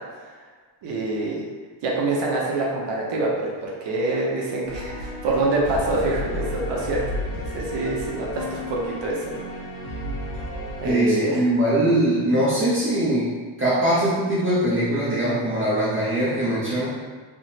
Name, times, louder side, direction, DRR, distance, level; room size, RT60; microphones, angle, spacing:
voice 1, 0.8-1.4 1.8-9.3 10.8-11.5, right 2 dB, 65° right, -3 dB, 0.8 m, -26 dB
sound 1, 4.6-10.9, left 1 dB, 40° left, 1.2 m, -32 dB
voice 2, 10.8-13.3 13.6-16.9, right 1 dB, 25° right, -9 dB, 0.8 m, -21 dB
3.6 x 2.9 x 2.8 m, 1.5 s
cardioid pair, 140°, 47 cm